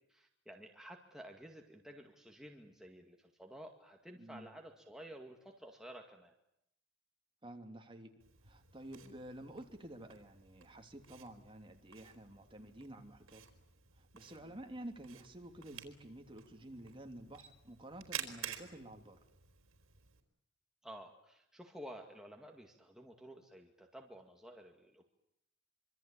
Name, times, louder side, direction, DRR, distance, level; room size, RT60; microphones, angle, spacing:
voice 1, 0.1-6.3 14.4-14.6 20.8-25.1, equal, 5° right, 1 dB, 2.1 m, -52 dB
voice 2, 4.2-4.5 7.4-8.1 8.4-13.4 14.0-19.2, right 1 dB, 25° right, 4 dB, 3.1 m, -50 dB
Camera, 8.2-20.2, right 9 dB, 80° right, 4.2 m, -51 dB
26.0 x 25.0 x 8.7 m, 0.78 s
head